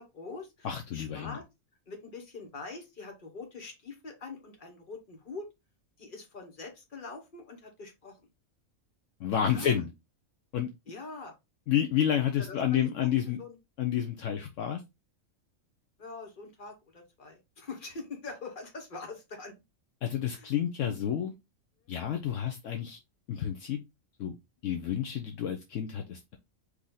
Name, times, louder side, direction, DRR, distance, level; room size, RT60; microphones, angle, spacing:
voice 1, 0.0-0.7 0.9-1.4 1.9-5.5 6.0-8.2 9.5-9.8 10.9-11.3 12.4-13.1 13.4-13.6 16.0-19.6 20.3-20.5 20.8-20.9, left 3 dB, 40° left, 3 dB, 1.5 m, -43 dB
voice 2, 0.6-1.4 9.2-9.9 10.5-10.7 11.7-13.4 13.8-14.8 20.0-21.3 21.9-23.0 23.3-23.8 24.2-24.3 24.6-26.4, left 9 dB, 70° left, 4 dB, 1.0 m, -30 dB
4.7 x 2.8 x 3.7 m, 0.22 s
omnidirectional pair, 1.4 m